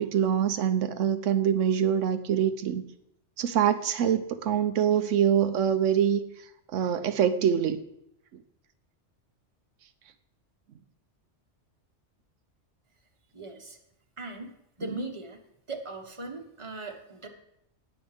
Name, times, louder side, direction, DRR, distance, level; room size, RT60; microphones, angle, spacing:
voice 1, 0.0-2.8 3.4-6.2 6.7-7.8, right 8 dB, 85° right, 9 dB, 1.0 m, -24 dB
voice 2, 13.3-13.8 14.2-15.4 15.7-17.3, right 2 dB, 25° right, 3 dB, 1.4 m, -39 dB
19.0 x 7.2 x 3.4 m, 0.78 s
omnidirectional pair, 1.2 m